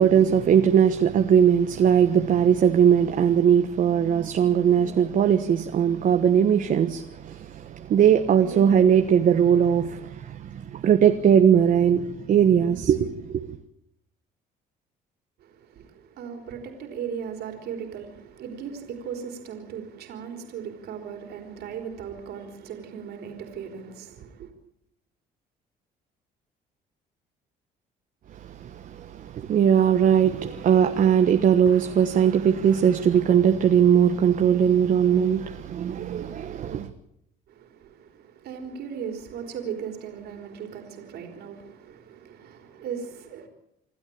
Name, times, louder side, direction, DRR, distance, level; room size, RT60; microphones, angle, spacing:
voice 1, 0.0-13.5 28.6-36.9, right 8 dB, 55° right, 1.3 m, -20 dB
voice 2, 15.4-24.5 37.5-43.5, right 7 dB, 70° right, 3.9 m, -37 dB
27.5 x 12.5 x 8.7 m
cardioid pair, 110°, 17 cm